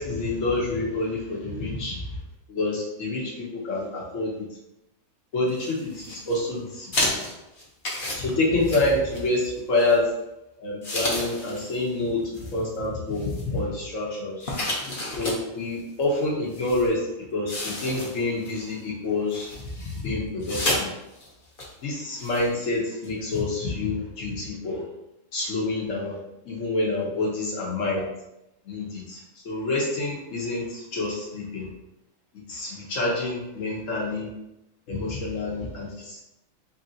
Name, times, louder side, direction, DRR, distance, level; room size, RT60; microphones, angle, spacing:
voice 1, 0.0-2.0 2.5-4.5 5.3-7.2 8.2-10.1 10.6-12.2 12.5-14.5 15.2-19.5 19.8-20.9 21.8-24.8 25.3-26.2 26.4-28.1 28.6-31.7 32.5-34.3 34.9-36.2, left 2 dB, 70° left, -3 dB, 1.3 m, -27 dB
sound 1, 5.5-6.4 6.9-9.4 9.8-10.0 10.8-11.9 12.2-12.5 13.1-13.6 14.4-15.4 16.0-16.1 16.5-16.9 17.5-18.6 19.3-20.0 20.4-20.8 21.1-21.3 21.6-21.7 22.2-22.5 23.0-23.1 23.3-23.4, left 1 dB, 45° left, 1.0 m, -31 dB
3.3 x 2.8 x 3.8 m, 0.89 s
omnidirectional pair, 1.4 m